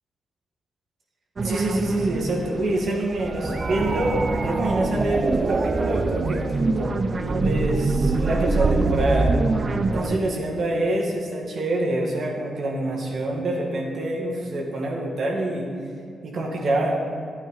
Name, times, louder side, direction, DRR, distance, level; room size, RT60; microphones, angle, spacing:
sound 1, 1.4-10.2, right 3 dB, 45° right, 0.7 m, -24 dB
voice 1, 1.4-9.3 9.9-15.7 16.2-17.0, right 1 dB, 65° right, -1 dB, 2.2 m, -26 dB
12.0 x 8.7 x 4.2 m, 2.5 s
supercardioid pair, 55°, 0 cm